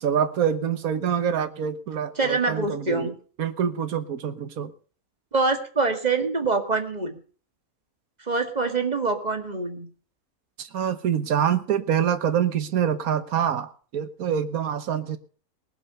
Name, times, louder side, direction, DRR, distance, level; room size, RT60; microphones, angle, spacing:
voice 1, 0.0-3.1 3.4-4.7 10.6-15.2, right 8 dB, 75° right, 1.6 m, -25 dB
voice 2, 2.2-3.2 5.3-7.2 8.3-9.9, right 3 dB, 30° right, 1.9 m, -25 dB
20.0 x 7.0 x 6.7 m
omnidirectional pair, 1.5 m